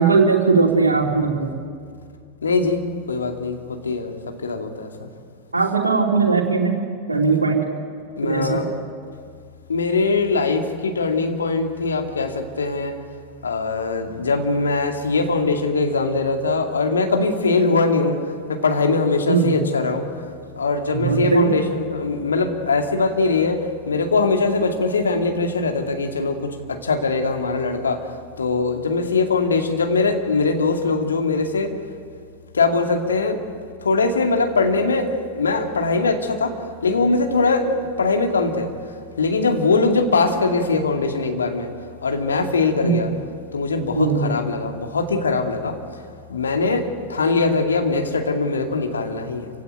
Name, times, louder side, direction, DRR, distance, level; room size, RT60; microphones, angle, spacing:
voice 1, 0.0-1.6 5.5-6.8 7.1-7.6 8.2-8.6 19.2-19.6 21.0-21.5 42.8-43.0 43.9-44.3, right 4 dB, 80° right, 0 dB, 3.0 m, -19 dB
voice 2, 2.4-2.8 3.1-5.1 8.2-8.7 9.7-12.9 13.4-18.2 18.5-20.0 20.6-26.4 26.7-28.0 28.4-31.7 32.5-33.4 33.8-36.5 36.8-38.7 39.2-41.7 42.0-43.1 43.5-45.8 46.3-49.5, left 3 dB, 70° left, 4 dB, 2.3 m, -21 dB
27.5 x 16.5 x 9.2 m, 2.2 s
figure-of-eight pair, 90°, 0 cm